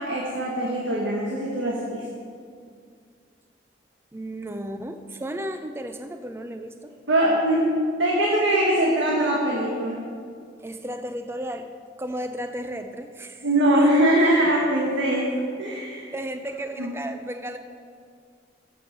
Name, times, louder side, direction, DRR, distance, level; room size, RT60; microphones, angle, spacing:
voice 1, 0.0-2.0 7.1-7.6 8.0-10.0 13.4-16.1 16.8-16.9, right 1 dB, 90° right, -3 dB, 1.7 m, -22 dB
voice 2, 4.1-6.9 10.6-11.7 12.0-13.5 13.8-13.9 16.1-17.6, right 1 dB, 15° right, 7 dB, 0.4 m, -34 dB
13.0 x 6.8 x 6.7 m, 2.2 s
head